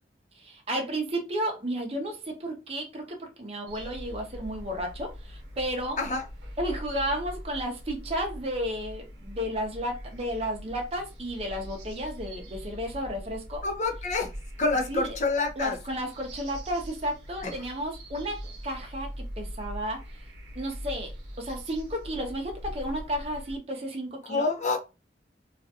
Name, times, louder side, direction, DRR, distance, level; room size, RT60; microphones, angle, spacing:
voice 1, 0.4-6.0 6.6-13.6 14.9-15.2 15.6-20.2 20.5-21.1 21.4-24.5, equal, 35° right, 0.6 m, -33 dB
sound 1, 3.7-23.6, equal, 80° right, 0.9 m, -42 dB
voice 2, 13.6-14.3 14.6-15.8 17.4-17.5 24.3-24.8, left 3 dB, 40° left, 0.5 m, -27 dB
2.4 x 2.2 x 2.7 m
head